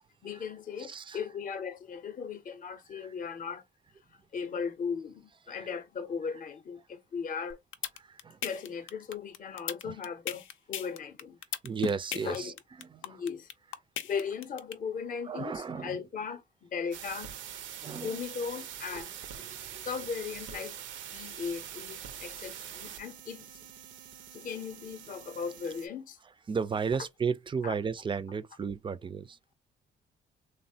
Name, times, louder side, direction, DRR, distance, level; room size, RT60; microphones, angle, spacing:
voice 1, 0.2-3.6 4.3-7.6 8.4-11.4 12.2-12.5 13.0-13.5 14.0-17.4 18.0-19.1 19.8-20.8 21.1-23.5 24.3-26.2 27.6-27.7, left 6 dB, 45° left, 0.6 m, -37 dB
voice 2, 0.8-1.2 2.9-3.1 5.5-5.7 8.0-8.4 9.8-10.0 11.6-13.2 15.2-16.0 17.8-18.2 19.4-19.8 22.9-23.0 26.5-29.5, right 5 dB, 25° right, 0.3 m, -35 dB
sound 1, 7.5-14.7, left 10 dB, 80° left, 0.5 m, -36 dB
sound 2, 16.9-25.9, right 9 dB, 75° right, 0.5 m, -44 dB
3.2 x 2.1 x 2.6 m
cardioid pair, 90°, 20 cm